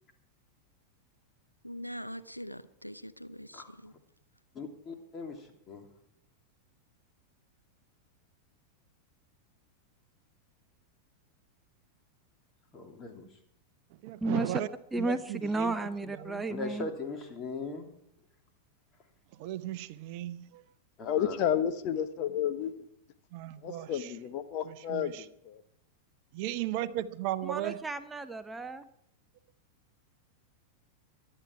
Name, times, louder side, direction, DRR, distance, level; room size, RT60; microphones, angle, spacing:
voice 1, 1.6-3.9, equal, 90° left, 0.6 m, -43 dB
voice 2, 4.5-5.9 12.7-13.3 16.5-17.9 21.0-21.4, left 3 dB, 25° left, 3.1 m, -39 dB
voice 3, 13.9-14.7 15.0-16.4 19.3-20.7 23.3-24.2 24.6-25.3 26.3-27.8, right 14 dB, 45° right, 0.7 m, -36 dB
voice 4, 14.9-16.9 27.5-28.8, right 2 dB, 10° right, 0.8 m, -33 dB
voice 5, 21.0-22.9 23.6-25.6, left 9 dB, 40° left, 1.1 m, -31 dB
24.5 x 9.9 x 4.7 m
figure-of-eight pair, 90°, 0 cm